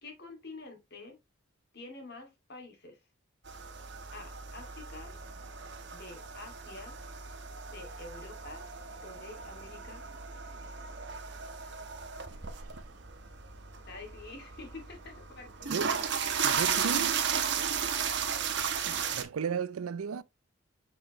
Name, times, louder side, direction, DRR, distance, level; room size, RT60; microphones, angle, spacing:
voice 1, 0.0-1.2 1.7-3.0 4.1-5.2 5.9-7.0 7.7-8.6 9.0-10.0 13.8-16.0, left 3 dB, 50° left, 2.4 m, -47 dB
sound 1, 3.5-19.2, right 7 dB, 55° right, 1.1 m, -35 dB
voice 2, 16.4-17.2 18.9-20.2, right 6 dB, 85° right, 0.4 m, -34 dB
6.4 x 6.2 x 3.0 m
head